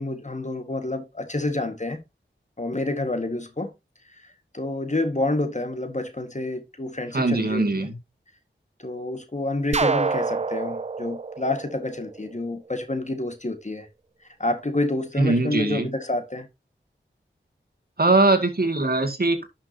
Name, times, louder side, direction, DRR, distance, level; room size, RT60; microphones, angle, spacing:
voice 1, 0.0-2.0 2.6-3.7 4.5-7.9 8.8-13.9 14.4-16.5, left 2 dB, 35° left, 1.6 m, -28 dB
voice 2, 7.1-8.0 15.2-15.9 18.0-19.5, right 2 dB, 50° right, 2.1 m, -21 dB
sound 1, 9.7-12.5, right 4 dB, 30° right, 0.4 m, -27 dB
11.0 x 5.9 x 2.8 m
wide cardioid pair, 50°, 21 cm